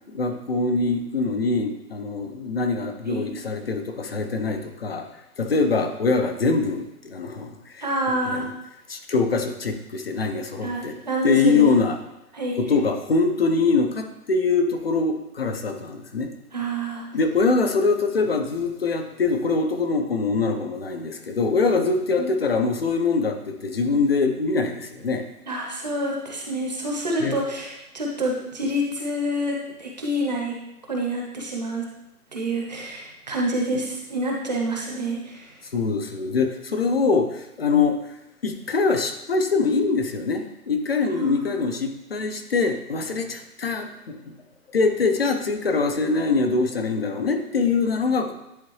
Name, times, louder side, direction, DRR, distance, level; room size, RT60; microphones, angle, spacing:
voice 1, 0.1-5.1 5.4-7.8 8.2-8.5 8.9-10.9 11.2-12.0 12.7-16.3 17.1-25.3 27.2-27.4 35.7-38.0 38.4-44.3 44.7-48.3, left 4 dB, 40° left, 7 dB, 0.5 m, -23 dB
voice 2, 7.8-8.5 10.6-11.7 12.3-12.6 16.5-17.0 22.2-22.3 25.5-30.5 30.9-31.8 32.3-35.6 41.1-41.6, right 1 dB, 30° right, -1 dB, 0.8 m, -27 dB
10.5 x 3.6 x 3.2 m, 0.90 s
hypercardioid pair, 170°, 46 cm